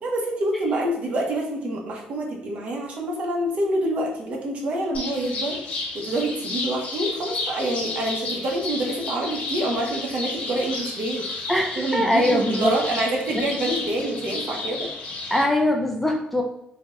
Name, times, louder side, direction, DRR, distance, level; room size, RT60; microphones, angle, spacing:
voice 1, 0.0-5.6 5.9-11.5 11.8-14.9, right 1 dB, 50° right, 0 dB, 1.1 m, -27 dB
sound 1, 4.9-15.4, left 3 dB, 55° left, 1.3 m, -32 dB
voice 2, 11.5-12.7 13.3-13.4 15.3-16.4, left 1 dB, 5° left, 1 dB, 0.4 m, -22 dB
3.9 x 2.4 x 3.8 m, 0.80 s
cardioid pair, 135°, 3 cm